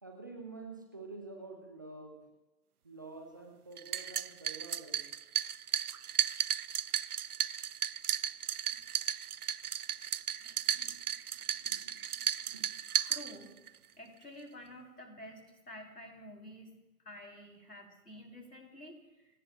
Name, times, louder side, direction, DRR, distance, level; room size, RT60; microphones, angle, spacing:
voice 1, 0.0-2.2 2.8-5.1 10.6-11.2 11.6-12.7, right 3 dB, 15° right, 2 dB, 0.7 m, -49 dB
sound 1, 3.8-13.8, right 9 dB, 70° right, 0.5 m, -35 dB
voice 2, 13.1-13.6 14.0-16.7 17.0-19.4, left 1 dB, 85° left, 2 dB, 4.1 m, -50 dB
28.5 x 17.5 x 2.5 m, 1.0 s
figure-of-eight pair, 140°, 46 cm